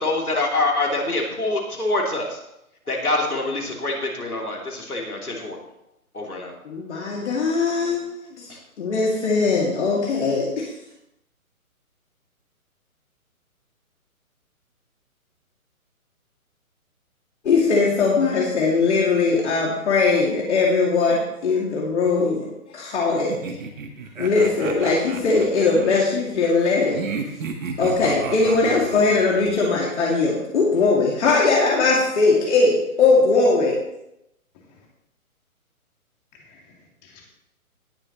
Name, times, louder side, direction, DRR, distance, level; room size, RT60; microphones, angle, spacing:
voice 1, 0.0-2.4 2.9-5.6 6.1-6.5 8.5-8.6, left 2 dB, 85° left, 0 dB, 3.0 m, -25 dB
voice 2, 6.6-8.5 8.8-10.7 17.4-22.5 22.7-23.4 24.2-27.0 27.8-33.8, left 4 dB, 50° left, -3 dB, 2.4 m, -20 dB
sound 1, 23.3-26.0 26.9-29.5, right 5 dB, 60° right, 1.8 m, -33 dB
voice 3, 36.3-37.2, left 4 dB, 30° left, 0 dB, 2.4 m, -53 dB
18.5 x 6.8 x 3.1 m, 0.84 s
figure-of-eight pair, 135°, 43 cm